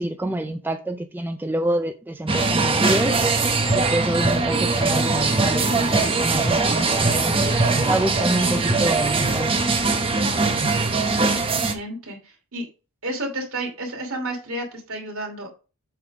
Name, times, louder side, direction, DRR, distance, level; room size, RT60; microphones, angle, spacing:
voice 1, 0.0-3.2 3.7-7.4 7.7-9.5, right 1 dB, 10° right, 0.4 m, -27 dB
sound 1, 2.3-11.7, right 3 dB, 25° right, 0.9 m, -21 dB
sound 2, 4.4-9.5, left 4 dB, 40° left, 1.6 m, -38 dB
voice 2, 11.3-12.7 13.0-15.5, right 1 dB, 65° right, 2.7 m, -31 dB
7.8 x 3.5 x 5.9 m
head